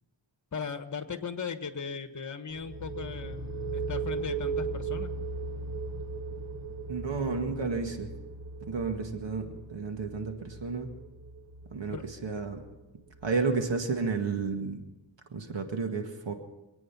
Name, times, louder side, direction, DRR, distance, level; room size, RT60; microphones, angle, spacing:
voice 1, 0.5-3.4 3.7-5.1 11.9-12.0, left 6 dB, 40° left, 9 dB, 1.4 m, -37 dB
sound 1, 2.5-14.0, right 4 dB, 50° right, 2.6 m, -38 dB
voice 2, 6.9-8.1 8.7-10.9 11.7-12.6 13.2-14.8 15.3-16.3, right 4 dB, 70° right, 5 dB, 1.9 m, -32 dB
26.0 x 9.3 x 5.9 m, 1.0 s
wide cardioid pair, 95°, 45 cm